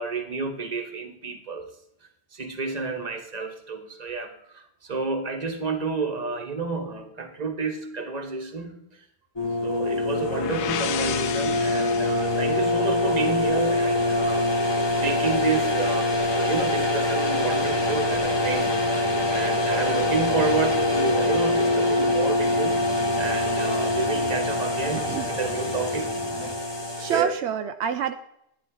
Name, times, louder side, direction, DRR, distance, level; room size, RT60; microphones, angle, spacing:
voice 1, 0.0-1.7 2.3-8.8 9.6-18.9 19.3-22.8 23.2-26.1 27.1-27.4, right 4 dB, 40° right, 4 dB, 1.4 m, -30 dB
sound 1, 9.4-27.2, left 1 dB, 25° left, 1.1 m, -24 dB
sound 2, 10.0-13.8, left 10 dB, 85° left, 0.9 m, -34 dB
sound 3, 17.4-26.5, left 1 dB, 5° left, 1.8 m, -40 dB
voice 2, 24.9-25.3 27.0-28.1, right 8 dB, 80° right, 8 dB, 0.9 m, -27 dB
11.0 x 9.5 x 3.8 m, 0.76 s
omnidirectional pair, 1.1 m